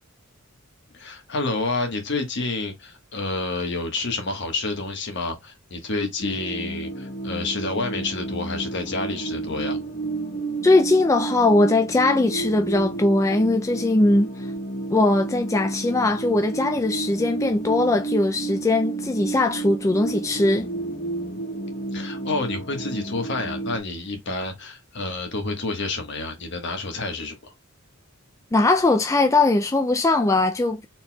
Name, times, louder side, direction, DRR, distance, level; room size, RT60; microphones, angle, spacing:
voice 1, 0.9-9.8 21.9-27.5, left 3 dB, 60° left, 1.3 m, -29 dB
sound 1, 6.2-23.8, right 3 dB, 45° left, 1.0 m, -31 dB
voice 2, 10.6-14.5 14.9-20.7 28.5-30.8, left 2 dB, 15° left, 0.3 m, -20 dB
4.3 x 4.0 x 2.3 m
head